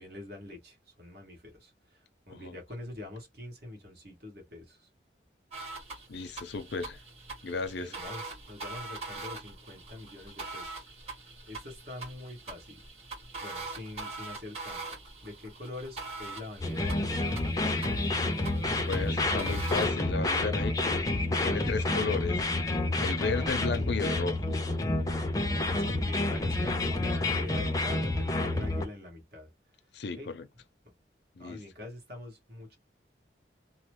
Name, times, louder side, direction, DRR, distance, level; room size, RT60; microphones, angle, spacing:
voice 1, 0.0-4.9 7.8-10.9 11.4-12.8 13.4-17.4 25.6-29.5 30.2-30.3 31.4-32.8, left 2 dB, 55° right, 1.4 m, -45 dB
sound 1, 5.5-19.9, right 3 dB, 35° right, 1.6 m, -43 dB
voice 2, 6.1-7.0 7.4-8.0 18.9-21.0 21.4-22.4 23.0-24.6 29.9-30.5 31.4-31.6, left 4 dB, 70° left, 0.5 m, -34 dB
sound 2, 16.6-28.8, left 2 dB, 20° left, 0.4 m, -29 dB
3.0 x 2.0 x 3.0 m
head